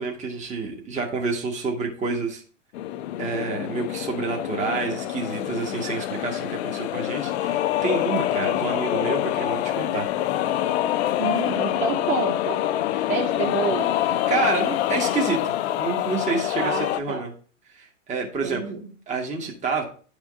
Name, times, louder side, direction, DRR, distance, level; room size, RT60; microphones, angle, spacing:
voice 1, 0.0-2.4 3.2-10.1 12.9-13.0 14.3-17.3 17.7-18.6 19.1-19.8, right 4 dB, 20° right, 0 dB, 1.4 m, -28 dB
sound 1, 2.7-17.0, left 13 dB, 55° left, 0.5 m, -26 dB
voice 2, 11.2-12.6 13.1-13.9 16.6-17.2 18.4-18.9, right 5 dB, 80° right, 0 dB, 2.0 m, -28 dB
10.5 x 3.6 x 3.6 m, 0.41 s
hypercardioid pair, 115°, 40 cm